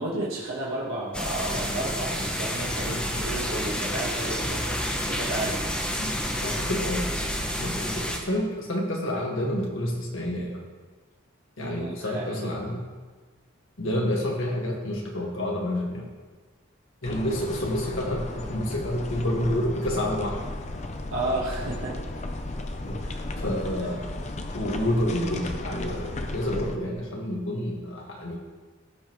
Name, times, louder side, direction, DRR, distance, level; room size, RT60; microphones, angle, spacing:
voice 1, 0.0-5.6 11.6-12.6 21.1-22.0, right 2 dB, 90° right, -7 dB, 1.6 m, -32 dB
sound 1, 1.1-8.2, equal, 5° left, 0.8 m, -29 dB
voice 2, 6.4-7.1 7.6-10.6 11.6-12.8 13.8-16.1 17.0-20.4 22.8-24.0 24.5-28.4, left 1 dB, 75° left, -1 dB, 1.8 m, -29 dB
sound 2, 17.0-26.8, left 2 dB, 35° left, 0.6 m, -34 dB
15.5 x 5.3 x 3.1 m, 1.4 s
head